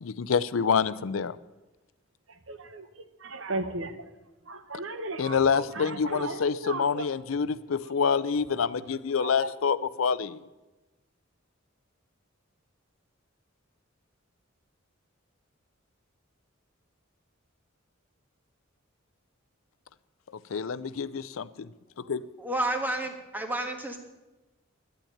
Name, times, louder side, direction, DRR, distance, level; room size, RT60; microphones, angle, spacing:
voice 1, 0.0-1.4 5.2-10.4 20.5-21.7 22.0-22.2, left 6 dB, 85° left, 16 dB, 0.5 m, -27 dB
voice 2, 2.5-2.9 3.2-4.1 4.4-7.1 9.2-9.5, right 3 dB, 70° right, 10 dB, 1.0 m, -36 dB
voice 3, 22.4-24.0, right 1 dB, 10° right, 3 dB, 1.6 m, -30 dB
11.5 x 9.2 x 8.7 m, 1.1 s
head